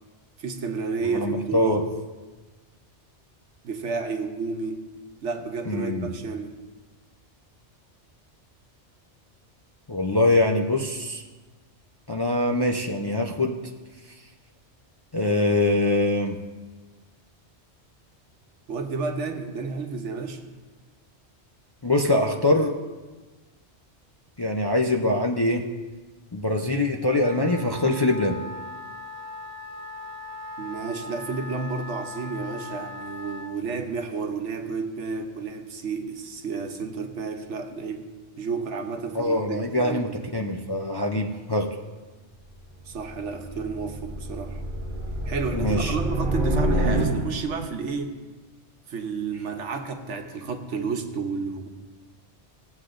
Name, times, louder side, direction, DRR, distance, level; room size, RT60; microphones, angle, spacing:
voice 1, 0.4-1.9 3.6-4.8 5.2-6.6 18.7-20.4 30.6-38.1 38.4-40.1 42.9-44.6 45.3-48.2 48.9-51.7, right 4 dB, 85° right, 5 dB, 1.2 m, -31 dB
voice 2, 1.1-1.8 5.7-6.1 9.9-11.2 12.1-13.6 15.1-16.4 21.8-22.7 24.4-25.6 26.3-28.4 39.1-41.8 45.5-45.9, left 2 dB, 30° left, 0 dB, 0.4 m, -23 dB
Wind instrument woodwind instrument, 27.2-33.5, left 2 dB, 70° right, 1.5 m, -39 dB
sound 1, 42.4-47.6, right 1 dB, 50° right, 1.2 m, -28 dB
16.5 x 8.2 x 2.5 m, 1.3 s
omnidirectional pair, 1.2 m